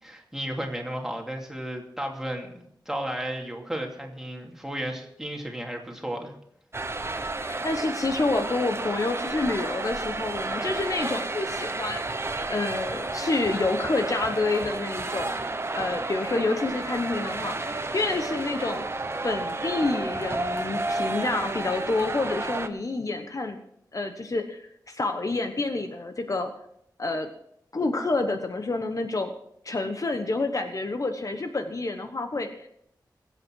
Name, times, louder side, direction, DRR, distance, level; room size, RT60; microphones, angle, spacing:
voice 1, 0.0-6.3, right 1 dB, 5° right, 1 dB, 2.6 m, -34 dB
sound 1, 6.7-22.7, right 2 dB, 35° right, 1.0 m, -31 dB
voice 2, 7.4-15.4 15.7-18.8 19.2-23.6 23.9-26.5 27.0-27.3 27.7-29.3 29.6-32.7, left 3 dB, 50° left, 6 dB, 1.1 m, -28 dB
22.0 x 8.3 x 4.7 m, 0.72 s
wide cardioid pair, 110°, 8 cm